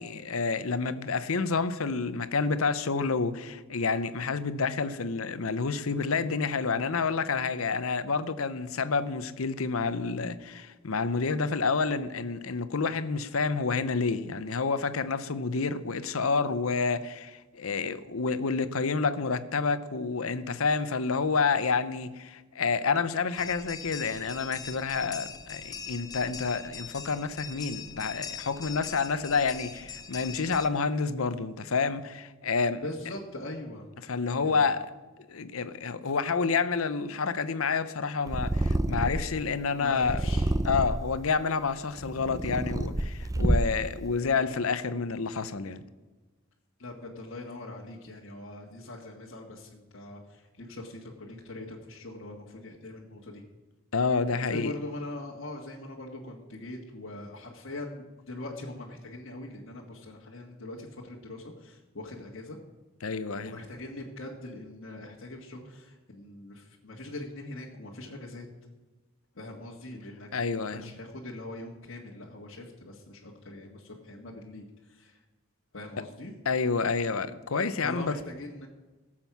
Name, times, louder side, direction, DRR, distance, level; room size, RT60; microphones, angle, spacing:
voice 1, 0.0-32.8 34.1-34.9 35.3-40.2 40.6-45.8 53.9-54.7 63.0-63.5 70.3-70.9 76.5-78.1, left 4 dB, 80° left, 0.8 m, -29 dB
sound 1, 23.4-30.7, left 6 dB, 15° left, 0.8 m, -42 dB
voice 2, 32.8-33.8 34.4-34.8 39.8-40.5 46.8-53.4 54.5-62.6 63.4-68.5 69.3-75.2 75.7-76.3 77.8-78.7, left 2 dB, 60° left, 1.5 m, -42 dB
Purr, 38.3-39.4 40.0-41.1 41.8-43.9, right 1 dB, 15° right, 0.5 m, -28 dB
17.5 x 7.5 x 6.0 m
head